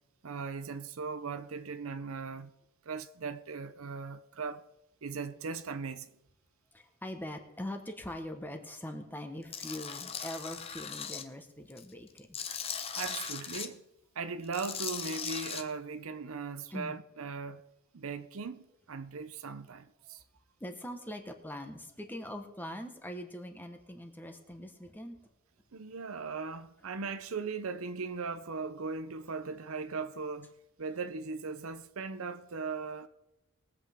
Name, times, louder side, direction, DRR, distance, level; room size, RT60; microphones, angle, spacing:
voice 1, 0.2-2.5 2.8-4.7 5.0-6.1 13.0-13.8 14.1-17.6 17.9-20.2 25.7-30.5 30.8-33.1, right 4 dB, 75° right, 0.7 m, -38 dB
voice 2, 6.7-12.4 16.7-17.0 20.6-25.2, left 1 dB, 10° left, 1.2 m, -42 dB
Tools, 9.5-11.2 11.7-13.7 14.4-15.6, left 7 dB, 25° left, 0.8 m, -38 dB
21.5 x 8.0 x 3.6 m
head